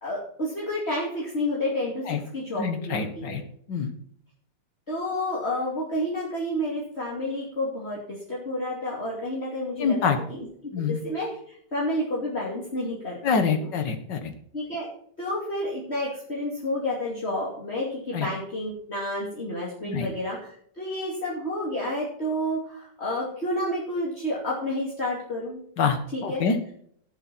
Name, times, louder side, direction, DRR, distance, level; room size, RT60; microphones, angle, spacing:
voice 1, 0.0-3.4 4.9-10.5 10.9-13.7 14.5-14.9 15.2-25.6 26.1-26.4, left 1 dB, 35° left, -4 dB, 3.0 m, -30 dB
voice 2, 2.6-3.4 3.7-3.9 9.8-10.2 10.7-11.0 13.2-14.3 18.1-18.3 19.8-20.1 25.8-26.7, left 5 dB, 85° left, 8 dB, 2.1 m, -26 dB
17.0 x 7.6 x 4.3 m, 0.64 s
omnidirectional pair, 1.9 m